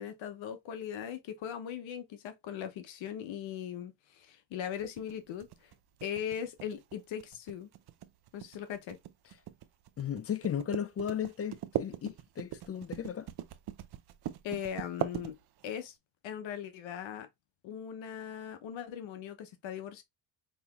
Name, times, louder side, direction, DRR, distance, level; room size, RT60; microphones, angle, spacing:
voice 1, 0.0-5.7 6.0-7.7 8.3-9.0 14.4-15.3 15.6-15.9 16.2-17.3 17.6-20.0, left 9 dB, 85° left, 0.9 m, -39 dB
sound 1, 4.8-15.8, right 12 dB, 60° right, 0.6 m, -40 dB
voice 2, 10.0-13.3, left 9 dB, 35° left, 0.4 m, -35 dB
5.5 x 3.0 x 2.3 m
cardioid pair, 85°, 45 cm